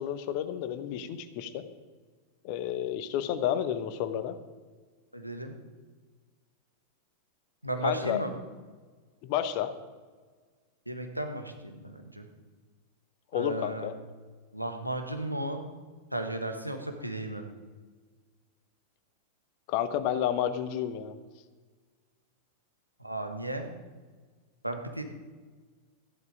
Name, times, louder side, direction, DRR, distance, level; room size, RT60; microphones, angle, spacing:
voice 1, 0.0-1.6 2.4-4.4 7.8-8.2 9.2-9.7 13.3-13.9 19.7-21.2, left 10 dB, 45° left, 11 dB, 1.0 m, -31 dB
voice 2, 5.1-5.5 7.6-8.3 10.9-12.3 13.3-13.9 14.5-15.6 16.1-17.4 23.0-23.7 24.6-25.0, right 1 dB, 90° right, 4 dB, 1.5 m, -34 dB
13.5 x 11.0 x 5.0 m, 1.4 s
figure-of-eight pair, 90°, 0 cm